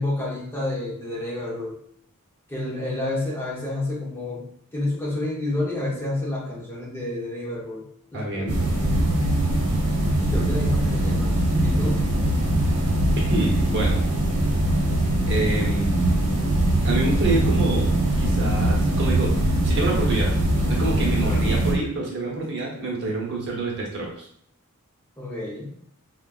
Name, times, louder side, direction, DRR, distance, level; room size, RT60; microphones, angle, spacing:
voice 1, 0.0-1.8 2.5-4.4 4.7-7.8 8.1-8.5 10.2-11.3 11.6-12.0 12.5-12.6 21.2-21.5 25.2-25.7, left 2 dB, 10° left, -4 dB, 0.7 m, -29 dB
voice 2, 8.1-8.6 13.3-14.0 15.3-15.9 16.8-17.9 18.2-19.3 19.6-20.3 20.7-24.3, right 2 dB, 50° right, -2 dB, 0.9 m, -27 dB
sound 1, 8.5-21.7, right 1 dB, 80° right, 0.9 m, -22 dB
4.5 x 2.2 x 2.4 m, 0.66 s
head